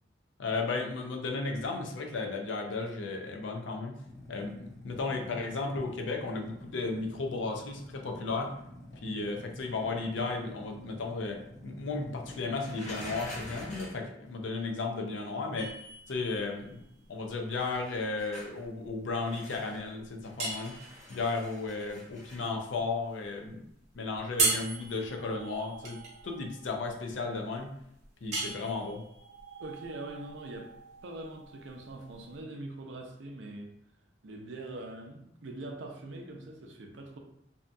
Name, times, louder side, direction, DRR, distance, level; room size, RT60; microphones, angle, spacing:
voice 1, 0.4-4.0 4.3-8.5 9.0-15.8 16.1-16.8 17.1-20.7 21.1-23.6 23.9-27.7 28.2-29.0, left 3 dB, 85° left, 3 dB, 0.5 m, -34 dB
sound 1, 4.0-13.8, left 1 dB, 15° left, 0.5 m, -49 dB
sound 2, 12.6-14.0 17.8-18.6 19.3-19.9 20.2-22.5 24.8-25.0, left 1 dB, 40° left, 0.8 m, -46 dB
sound 3, 15.6-32.4, right 3 dB, 40° right, 0.7 m, -38 dB
voice 2, 29.6-30.7 31.0-33.7 34.2-37.2, right 2 dB, 80° right, 2 dB, 0.5 m, -43 dB
2.7 x 2.2 x 2.5 m, 0.78 s
head